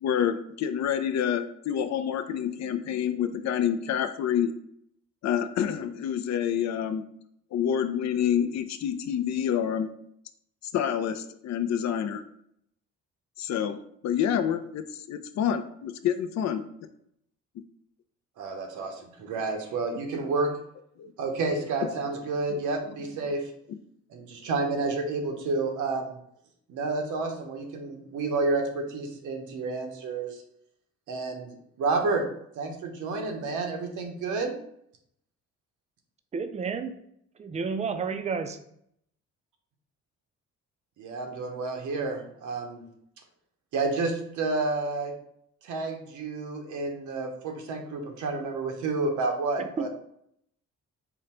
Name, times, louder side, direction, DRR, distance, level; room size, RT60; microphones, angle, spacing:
voice 1, 0.0-4.5 5.2-7.0 7.5-9.9 10.7-12.2 13.4-13.8 14.0-16.6 21.0-21.1 22.5-22.6, left 9 dB, 65° left, 9 dB, 0.4 m, -28 dB
voice 2, 18.4-20.5 21.2-23.5 24.1-26.2 26.7-30.4 31.1-32.3 32.5-34.6 41.0-42.9 43.7-45.1 45.6-49.9, right 3 dB, 75° right, 4 dB, 0.8 m, -30 dB
voice 3, 36.3-36.9 37.4-38.6 49.6-49.9, right 5 dB, 25° right, 8 dB, 0.4 m, -31 dB
3.8 x 2.1 x 4.2 m, 0.72 s
cardioid pair, 90°, 30 cm